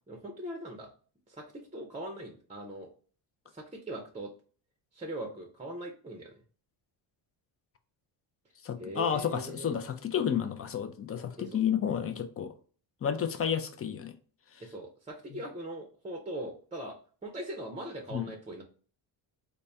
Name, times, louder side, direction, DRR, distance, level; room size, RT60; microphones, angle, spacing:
voice 1, 0.1-0.9 1.3-1.4 1.7-2.9 3.5-4.3 4.9-6.3 8.8-9.7 11.4-11.6 14.6-17.0 17.2-18.6, right 1 dB, 15° right, 0.6 m, -40 dB
voice 2, 8.6-12.5 13.0-14.1 18.1-18.3, left 8 dB, 30° left, 0.5 m, -31 dB
4.0 x 2.2 x 3.4 m
cardioid pair, 100°, 47 cm